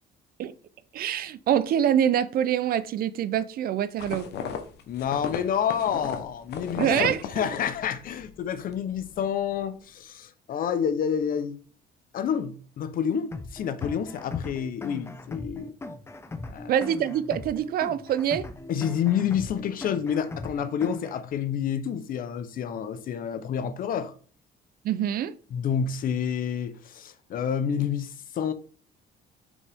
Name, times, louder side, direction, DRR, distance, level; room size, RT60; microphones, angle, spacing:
voice 1, 0.9-4.3 6.8-7.5 16.7-18.4 24.8-25.3, right 10 dB, 55° right, 0.5 m, -25 dB
sound 1, 4.0-8.3 8.6-9.1, left 7 dB, 65° left, 1.0 m, -35 dB
voice 2, 4.9-11.6 12.1-15.7 16.5-16.7 18.7-24.1 25.5-28.5, left 8 dB, 50° left, 0.7 m, -29 dB
sound 2, 13.3-21.3, left 3 dB, 15° left, 0.6 m, -39 dB
6.8 x 5.2 x 3.5 m
cardioid pair, 145°, 18 cm